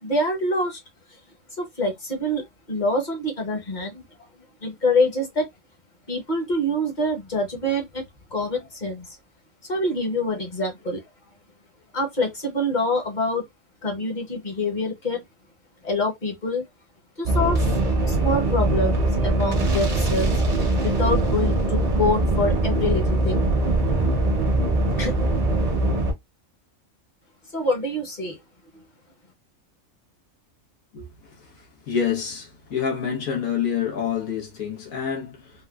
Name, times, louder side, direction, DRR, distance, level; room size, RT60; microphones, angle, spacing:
voice 1, 0.0-0.8 1.6-4.0 4.6-5.5 6.1-8.1 8.3-9.1 9.7-11.0 11.9-13.5 13.8-15.2 15.8-16.6 17.2-17.6 18.1-20.4 20.8-23.4 25.0-25.1 27.5-28.4, left 1 dB, 40° left, 1.0 m, -25 dB
sound 1, 17.3-26.1, right 2 dB, 35° right, 0.7 m, -22 dB
voice 2, 31.9-35.5, left 7 dB, 85° left, 1.5 m, -27 dB
3.7 x 2.1 x 2.3 m
omnidirectional pair, 1.4 m